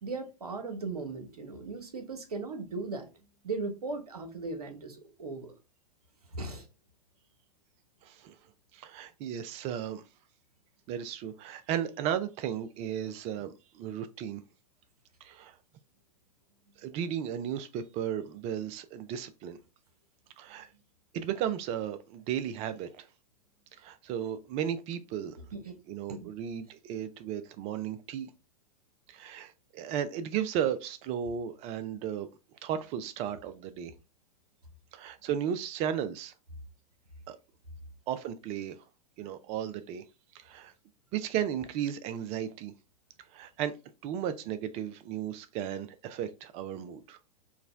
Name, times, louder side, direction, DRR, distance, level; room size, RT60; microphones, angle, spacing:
voice 1, 0.0-3.1 3.4-5.6 6.3-6.7 25.5-25.7 26.1-26.3, right 3 dB, 80° right, 1.0 m, -37 dB
voice 2, 8.0-8.3 8.7-10.0 10.9-14.4 15.2-15.6 16.8-19.6 20.4-20.7 21.1-23.1 23.8-25.4 25.9-28.3 29.1-32.3 32.6-33.9 34.9-36.3 37.3-37.4 38.1-38.8 39.2-40.0 40.3-40.7 41.1-42.7 43.3-43.7 44.0-47.2, right 9 dB, 35° right, 0.4 m, -35 dB
4.6 x 2.2 x 3.3 m
figure-of-eight pair, 100°, 19 cm